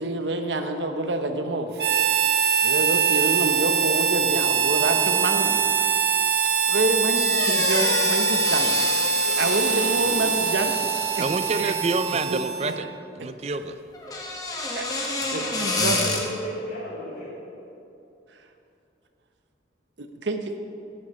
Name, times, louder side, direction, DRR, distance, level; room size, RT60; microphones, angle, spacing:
voice 1, 0.0-1.7 2.6-5.6 6.7-8.7 9.3-10.8 11.2-11.7 12.3-12.4 14.7-14.8 15.3-16.0 20.0-20.6, right 2 dB, 85° right, 6 dB, 0.9 m, -27 dB
Harmonica, 1.8-12.9, right 6 dB, 65° right, 0.7 m, -23 dB
sound 1, 7.1-12.0 13.9-16.2, left 2 dB, 20° left, 1.3 m, -29 dB
voice 2, 9.2-10.3 14.9-15.4 15.9-17.4, equal, 80° left, -12 dB, 3.2 m, -36 dB
voice 3, 11.2-12.9 13.2-13.8, right 3 dB, 35° right, 11 dB, 0.5 m, -27 dB
12.5 x 10.0 x 4.3 m, 2.8 s
head